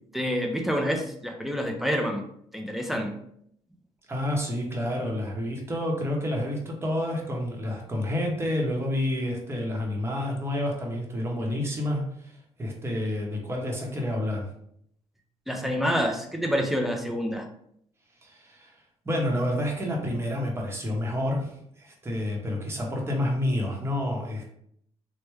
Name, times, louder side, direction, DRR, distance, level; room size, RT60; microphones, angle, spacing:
voice 1, 0.1-2.2 2.5-3.2 15.5-17.5, equal, ahead, 3 dB, 0.5 m, -27 dB
voice 2, 4.1-14.5 18.2-18.7 19.0-24.4, left 1 dB, 20° right, -1 dB, 0.9 m, -29 dB
3.3 x 2.1 x 3.2 m, 0.70 s
cardioid pair, 85°, 12 cm